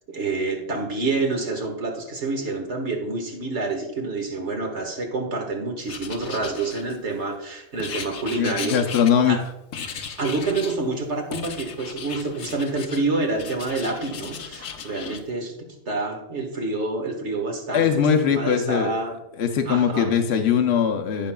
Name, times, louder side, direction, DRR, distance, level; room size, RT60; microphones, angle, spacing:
voice 1, 0.1-8.8 9.2-9.4 10.2-15.6 15.9-17.9 18.3-19.2 19.7-20.1, right 3 dB, 55° right, 3 dB, 1.8 m, -27 dB
Writing, 5.9-7.2 7.8-9.4 9.7-10.8 11.3-13.0 13.4-15.2, left 6 dB, 80° left, 1.3 m, -36 dB
voice 2, 8.4-9.4 17.7-18.9 19.4-21.3, left 7 dB, 60° left, 4 dB, 0.9 m, -21 dB
14.0 x 6.1 x 2.3 m, 0.89 s
omnidirectional pair, 1.4 m